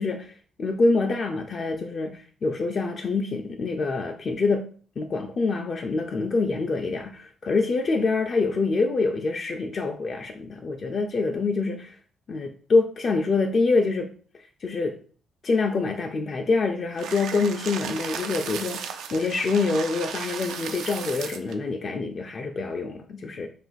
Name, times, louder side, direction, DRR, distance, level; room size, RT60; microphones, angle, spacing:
voice 1, 0.0-4.7 5.0-12.0 12.3-14.1 14.6-15.0 15.4-23.5, left 3 dB, 45° left, 0.4 m, -26 dB
sound 1, 17.0-21.5, right 7 dB, 80° right, 0.3 m, -35 dB
2.5 x 2.4 x 3.9 m
cardioid pair, 90°, 0 cm